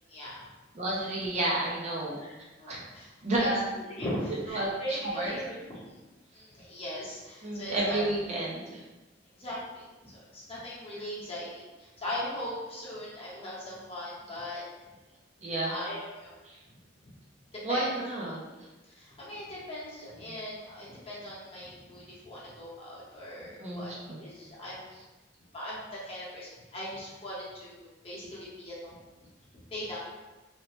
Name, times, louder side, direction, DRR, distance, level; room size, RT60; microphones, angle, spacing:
voice 1, 0.1-0.4 2.2-3.1 3.4-3.5 3.7-6.0 6.3-8.0 9.4-14.6 15.6-16.3 17.7-17.9 18.9-23.9 24.2-25.0 25.5-29.0 29.7-30.0, left 1 dB, 30° left, -7 dB, 0.8 m, -39 dB
voice 2, 0.7-2.2 2.7-2.8 3.2-3.6 4.5-5.4 7.4-8.8 15.4-15.7 16.4-16.6 17.6-18.4 23.6-23.8 24.1-24.2, right 1 dB, 35° right, -4 dB, 0.5 m, -30 dB
2.8 x 2.0 x 3.0 m, 1.1 s
head